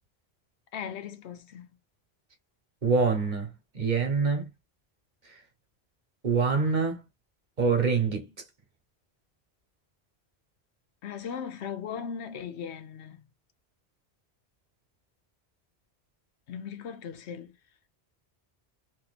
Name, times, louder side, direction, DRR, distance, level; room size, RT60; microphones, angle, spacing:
voice 1, 0.7-1.8 11.0-13.3 16.5-17.6, left 7 dB, 90° left, 1.0 m, -38 dB
voice 2, 2.8-4.5 6.2-7.0 7.6-8.3, right 5 dB, 45° right, 1.1 m, -25 dB
2.8 x 2.7 x 4.1 m
omnidirectional pair, 1.1 m